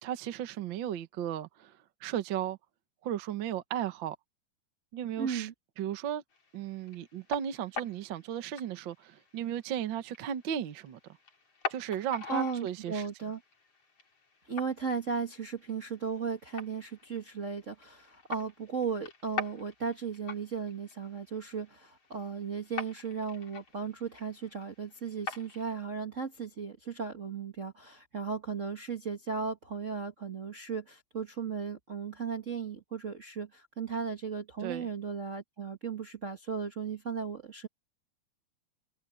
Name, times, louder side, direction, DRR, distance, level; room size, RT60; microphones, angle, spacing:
voice 1, 0.0-2.6 3.0-4.2 4.9-5.5 5.8-6.2 6.5-11.0 11.7-13.0 34.6-34.9, right 10 dB, 65° right, 1.1 m, -35 dB
voice 2, 5.2-5.5 12.3-13.4 14.5-37.7, right 6 dB, 50° right, 0.9 m, -36 dB
sound 1, 6.3-25.6, left 5 dB, 45° left, 5.3 m, -45 dB
omnidirectional pair, 3.9 m